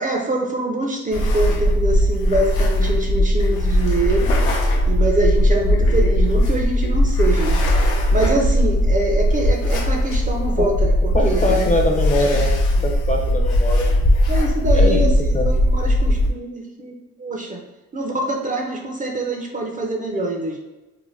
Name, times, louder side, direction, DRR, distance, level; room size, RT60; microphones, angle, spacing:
voice 1, 0.0-11.7 12.1-12.4 12.8-12.9 14.3-17.6 17.9-20.6, right 1 dB, 25° right, 1 dB, 0.4 m, -25 dB
Ruffling bed sheets calm, 1.1-16.3, equal, 85° left, 0.6 m, -18 dB
voice 2, 11.1-12.6 12.8-13.9 14.7-15.1 15.3-15.5, left 1 dB, 25° left, 2 dB, 0.5 m, -22 dB
2.6 x 2.1 x 3.1 m, 1.1 s
cardioid pair, 90°, 30 cm